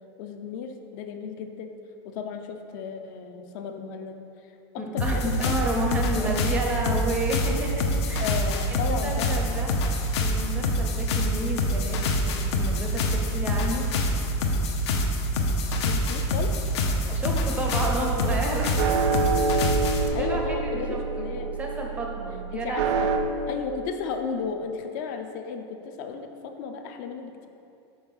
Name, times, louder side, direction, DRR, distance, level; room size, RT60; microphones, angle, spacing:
voice 1, 0.2-1.7 2.0-4.2 4.7-5.5 6.1-6.4 8.2-9.5 15.8-16.5 20.1-21.5 22.5-23.1 23.5-27.5, left 5 dB, 40° left, 6 dB, 0.5 m, -34 dB
voice 2, 4.8-8.3 8.7-9.9 10.2-13.9 17.1-18.8 20.1-23.1, right 1 dB, 10° right, 0 dB, 0.5 m, -31 dB
sound 1, 5.0-20.1, left 1 dB, 70° left, 0.8 m, -26 dB
sound 2, 17.9-23.2, right 4 dB, 80° right, 0.6 m, -27 dB
6.2 x 4.8 x 5.4 m, 2.7 s
supercardioid pair, 180°, 15 cm